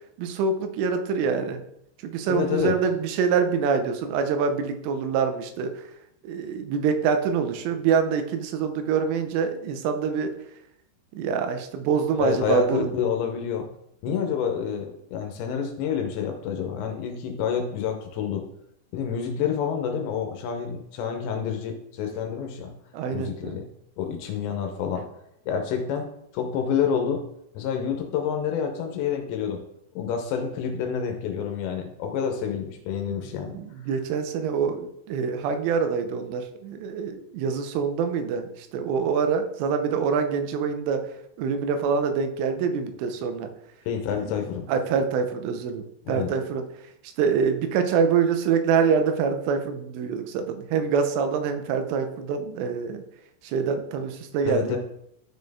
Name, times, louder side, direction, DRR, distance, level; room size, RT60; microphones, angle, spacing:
voice 1, 0.2-1.6 2.0-5.9 6.2-10.3 11.1-12.9 14.2-14.3 22.9-23.6 33.5-41.1 41.4-43.5 44.7-46.7 47.0-53.0 53.4-54.8, right 6 dB, 90° right, 7 dB, 3.3 m, -25 dB
voice 2, 2.3-2.7 12.2-13.7 14.0-18.5 18.9-22.8 23.1-23.7 24.0-25.1 25.5-27.3 27.5-29.6 30.0-33.6 43.9-44.7 46.1-46.3 54.5-54.8, left 7 dB, 75° left, 4 dB, 2.8 m, -28 dB
12.5 x 4.3 x 3.5 m, 0.76 s
omnidirectional pair, 5.5 m